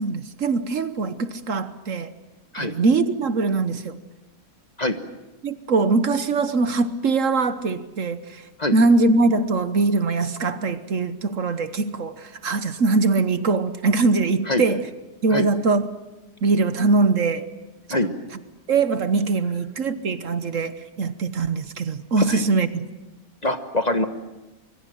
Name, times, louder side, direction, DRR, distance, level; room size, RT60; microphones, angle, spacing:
voice 1, 0.0-2.1 2.6-4.0 5.4-8.4 8.7-14.9 15.2-15.9 16.4-17.5 17.9-18.1 18.7-22.9, right 3 dB, 60° right, 11 dB, 1.4 m, -22 dB
voice 2, 23.4-24.1, left 2 dB, 30° left, 8 dB, 1.3 m, -23 dB
25.0 x 23.0 x 7.7 m, 1.0 s
omnidirectional pair, 1.6 m